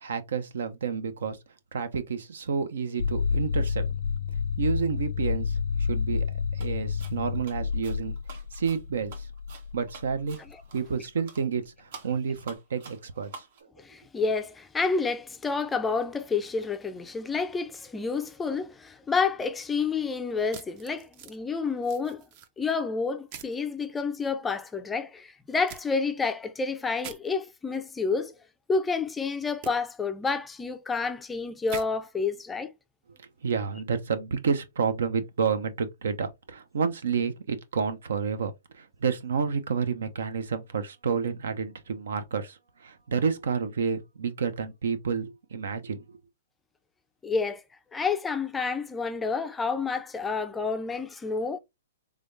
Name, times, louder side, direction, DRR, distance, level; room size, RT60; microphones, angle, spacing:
voice 1, 0.0-1.4 1.7-3.8 4.6-6.3 6.5-8.2 8.5-9.3 9.7-10.4 10.7-13.4 33.2-46.1, right 6 dB, 75° right, 0.7 m, -30 dB
sound 1, 3.0-10.6, left 6 dB, 80° left, 0.4 m, -29 dB
sound 2, 6.6-6.7 7.0-11.0 11.3-11.5 11.9-13.6, right 5 dB, 55° right, 1.0 m, -47 dB
voice 2, 13.8-22.3 22.6-28.3 28.7-32.7 47.2-47.6 47.9-51.6, left 4 dB, 10° left, 0.4 m, -29 dB
sound 3, 20.5-21.4 21.8-22.5 23.3-23.6 25.7-25.8 27.0-27.2 29.6-29.7 31.7-31.9, right 8 dB, 40° right, 0.6 m, -42 dB
3.5 x 3.4 x 2.6 m
hypercardioid pair, 140°, 0 cm